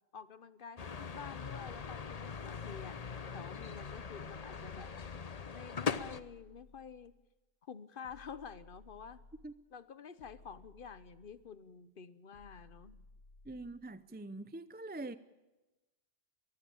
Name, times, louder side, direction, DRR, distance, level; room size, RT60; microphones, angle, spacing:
voice 1, 0.1-3.0 3.3-5.0 5.5-7.1 7.6-9.2 9.7-13.0, left 6 dB, 55° left, 1.2 m, -49 dB
sound 1, 0.8-6.2, left 5 dB, 40° left, 0.8 m, -41 dB
sound 2, 5.9-7.3 8.0-9.7 10.2-11.6 12.3-13.9, left 2 dB, 80° left, 2.3 m, -60 dB
voice 2, 13.5-15.2, right 2 dB, 10° right, 0.6 m, -44 dB
23.0 x 15.5 x 8.8 m
omnidirectional pair, 1.1 m